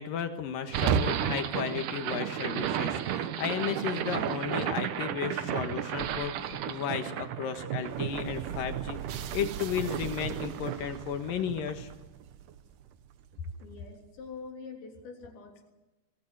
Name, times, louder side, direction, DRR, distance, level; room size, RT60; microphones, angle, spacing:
voice 1, 0.0-11.9, left 7 dB, 60° left, 7 dB, 2.9 m, -34 dB
sound 1, 0.7-12.9, right 9 dB, 75° right, 1.9 m, -33 dB
voice 2, 13.5-15.7, left 4 dB, 85° left, 1 dB, 5.7 m, -45 dB
24.5 x 19.0 x 8.1 m, 1.0 s
omnidirectional pair, 5.0 m